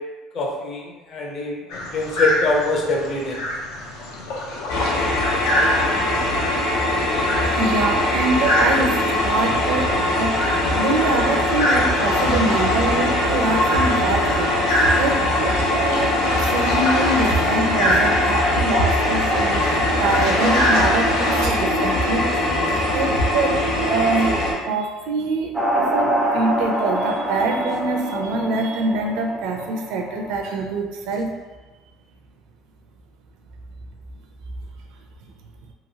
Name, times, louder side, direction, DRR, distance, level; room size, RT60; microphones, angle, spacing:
voice 1, 0.3-3.4, left 2 dB, 35° left, -1 dB, 0.6 m, -24 dB
sound 1, 1.7-21.4, left 1 dB, 85° left, 0.7 m, -26 dB
sound 2, 4.7-24.5, left 1 dB, 65° left, 1.3 m, -21 dB
voice 2, 7.5-31.3, right 3 dB, 65° right, 2 dB, 0.4 m, -25 dB
sound 3, 25.5-30.5, right 1 dB, 5° right, 0.4 m, -25 dB
2.9 x 2.9 x 2.7 m, 1.2 s
cardioid pair, 165°, 0 cm